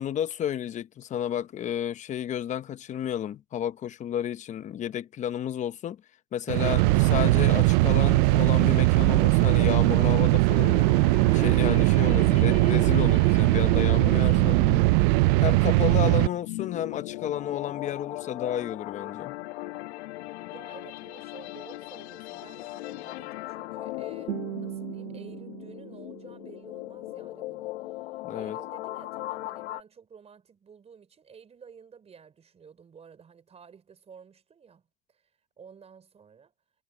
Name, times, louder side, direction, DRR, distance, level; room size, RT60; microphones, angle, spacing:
voice 1, 0.0-6.0 6.3-10.8 11.3-14.6 15.4-19.3 28.2-28.6, left 10 dB, 20° left, 0.8 m, -32 dB
sound 1, 6.5-16.3, right 24 dB, 55° right, 0.4 m, -20 dB
sound 2, 10.5-29.8, left 18 dB, 80° left, 1.2 m, -39 dB
voice 2, 20.5-27.8 28.3-35.3 35.6-36.5, right 6 dB, 20° right, 4.6 m, -51 dB
Guitar, 24.3-27.3, right 14 dB, 85° right, 1.5 m, -39 dB
supercardioid pair, 145°, 32 cm